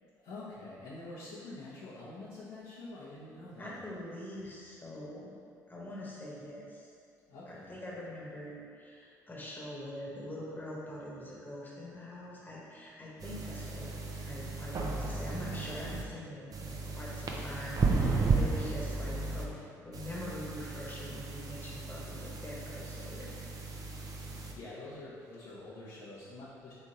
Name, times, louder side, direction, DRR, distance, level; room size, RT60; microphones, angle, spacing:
voice 1, 0.2-3.8 7.3-7.8 23.7-23.8 24.3-26.7, left 2 dB, 65° left, -12 dB, 1.1 m, -46 dB
voice 2, 3.6-5.4 5.7-6.9 7.5-13.9 14.2-19.5 19.8-23.6, left 1 dB, 20° left, -6 dB, 1.3 m, -44 dB
sound 1, 13.2-16.0 16.5-19.4 19.9-24.5, right 4 dB, 45° right, 0.7 m, -34 dB
3.6 x 3.4 x 4.2 m, 2.3 s
hypercardioid pair, 50°, 9 cm